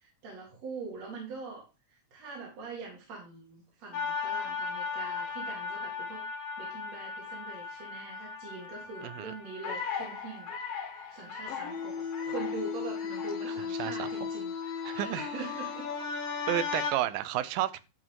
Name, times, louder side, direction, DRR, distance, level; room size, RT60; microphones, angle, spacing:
voice 1, 0.0-1.6 2.1-6.2 6.6-10.5 10.9-11.9 12.2-14.5 14.9-15.9 16.7-16.9, right 4 dB, 50° right, 3.3 m, -43 dB
sound 1, 3.9-16.9, left 6 dB, 80° left, 3.0 m, -36 dB
voice 2, 9.0-9.3 13.5-14.1 14.9-15.2 16.5-17.8, right 13 dB, 85° right, 2.4 m, -32 dB
11.0 x 5.0 x 4.6 m
omnidirectional pair, 4.0 m